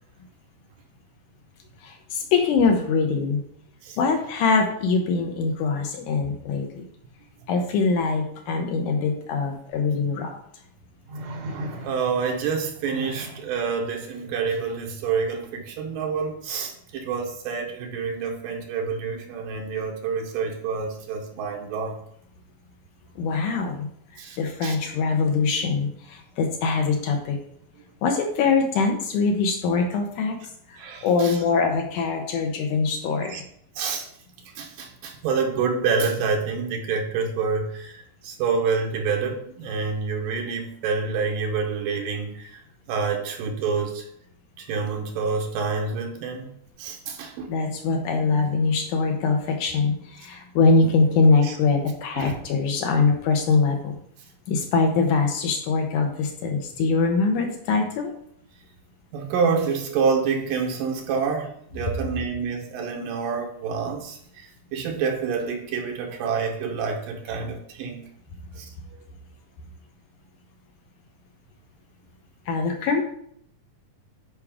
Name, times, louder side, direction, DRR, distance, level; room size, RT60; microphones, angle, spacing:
voice 1, 1.8-3.4 4.0-6.8 7.5-10.3 23.2-23.9 24.4-27.4 28.0-30.4 30.7-33.3 47.5-54.0 54.5-58.1 72.5-73.0, left 4 dB, 75° left, 3 dB, 2.2 m, -23 dB
sound 1, 9.7-9.8 11.1-12.3 12.8-13.5 15.4-15.6, right 1 dB, 65° right, 1.5 m, -36 dB
voice 2, 11.8-22.0 24.2-24.8 30.8-31.4 33.2-33.4 33.8-34.1 34.5-42.6 42.9-44.1 44.6-46.5 46.8-47.5 51.4-51.6 52.2-52.4 59.1-68.1 68.6-68.7, right 5 dB, 80° right, 1 dB, 2.7 m, -27 dB
10.5 x 4.8 x 3.6 m, 0.66 s
omnidirectional pair, 3.9 m